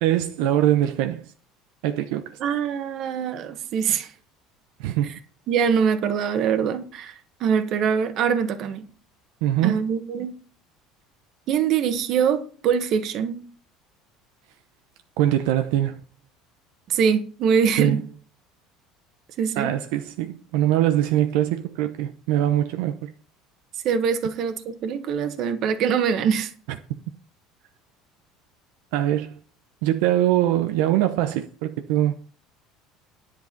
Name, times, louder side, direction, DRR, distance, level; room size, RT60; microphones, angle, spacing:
voice 1, 0.0-1.2 1.8-2.3 4.8-5.1 9.4-9.8 15.2-16.0 17.8-18.0 19.6-23.1 28.9-29.3 29.8-32.1, right 12 dB, 80° right, 0.9 m, -22 dB
voice 2, 2.4-4.1 5.0-5.2 5.5-8.9 9.6-10.4 11.5-13.4 16.9-18.0 19.4-19.7 23.8-26.5, right 7 dB, 45° right, 1.5 m, -23 dB
10.5 x 7.8 x 5.3 m
cardioid pair, 165°, 0 cm